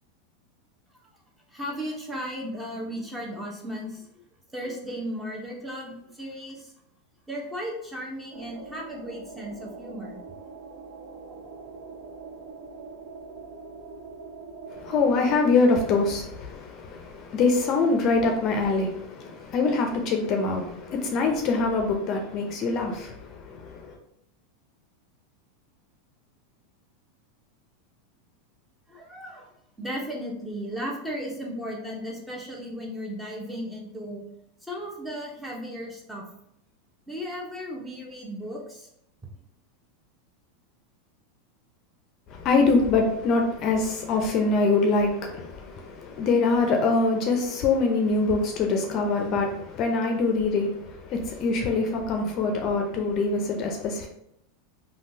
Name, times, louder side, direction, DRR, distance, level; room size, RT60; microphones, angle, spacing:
voice 1, 1.5-4.0 4.5-6.7 7.3-10.2 28.9-29.5 29.8-34.2 34.6-36.2 37.1-38.9, equal, 5° right, 0.9 m, -35 dB
sound 1, 8.3-16.2, right 4 dB, 45° right, 0.7 m, -42 dB
voice 2, 14.7-24.0 42.3-54.1, left 3 dB, 45° left, 0.5 m, -24 dB
3.5 x 2.3 x 2.7 m
hypercardioid pair, 110°, 0 cm